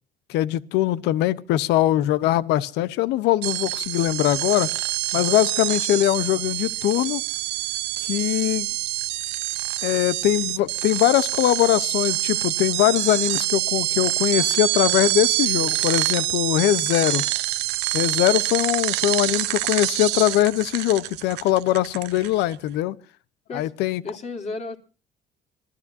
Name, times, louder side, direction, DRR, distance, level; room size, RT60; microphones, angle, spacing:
voice 1, 0.3-4.7 5.1-7.2 8.0-8.7 9.8-17.2 17.9-23.0 23.5-24.0, left 14 dB, 90° left, 0.9 m, -22 dB
sound 1, 3.4-22.6, right 18 dB, 90° right, 0.7 m, -26 dB
voice 2, 24.0-24.8, left 3 dB, 40° left, 3.4 m, -34 dB
25.5 x 16.0 x 2.7 m
cardioid pair, 110°, 17 cm